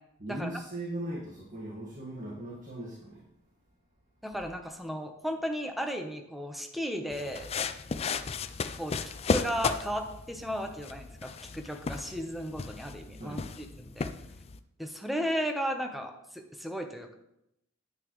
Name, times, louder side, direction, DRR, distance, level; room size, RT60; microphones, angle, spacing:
voice 1, 0.2-3.3 13.2-13.6, right 1 dB, 40° right, -3 dB, 1.7 m, -39 dB
voice 2, 4.2-7.5 8.8-14.1 14.8-17.1, equal, ahead, 4 dB, 0.9 m, -35 dB
sound 1, 7.1-14.6, left 4 dB, 30° left, 0.4 m, -35 dB
9.8 x 9.1 x 3.1 m, 0.82 s
head